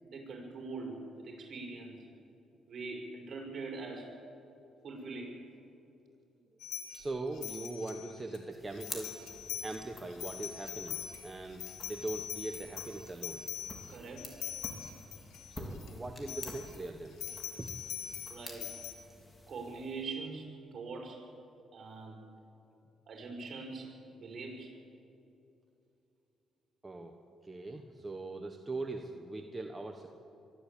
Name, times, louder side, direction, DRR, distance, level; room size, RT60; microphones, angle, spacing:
voice 1, 0.0-1.9 2.7-4.1 4.8-5.4 13.9-14.5 18.3-18.7 19.5-21.2 21.7-22.2 23.1-24.7, right 3 dB, 50° right, 0 dB, 5.9 m, -43 dB
sound 1, 6.6-8.4 8.8-9.8 10.1-15.9 16.2-16.8 17.2-18.9, left 10 dB, 90° left, 1.9 m, -43 dB
voice 2, 6.9-9.2 9.6-13.4 15.5-17.2 17.6-17.7 26.8-27.2 27.4-30.1, right 2 dB, 20° right, 4 dB, 1.4 m, -41 dB
sound 2, 8.5-20.2, left 2 dB, 25° left, 3.9 m, -49 dB
23.5 x 13.0 x 8.6 m, 2.8 s
cardioid pair, 90°, 0 cm